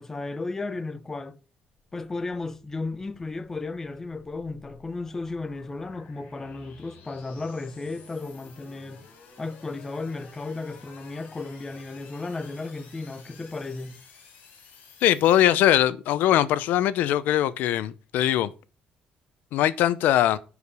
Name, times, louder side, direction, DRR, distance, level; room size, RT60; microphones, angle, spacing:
voice 1, 0.0-1.4 1.9-9.1 9.4-14.0, left 3 dB, 15° left, 0.6 m, -34 dB
sound 1, 1.8-15.4, left 5 dB, 60° left, 4.2 m, -52 dB
voice 2, 15.0-18.5 19.5-20.4, left 12 dB, 75° left, 0.7 m, -21 dB
10.0 x 4.9 x 6.8 m
cardioid pair, 175°, 3 cm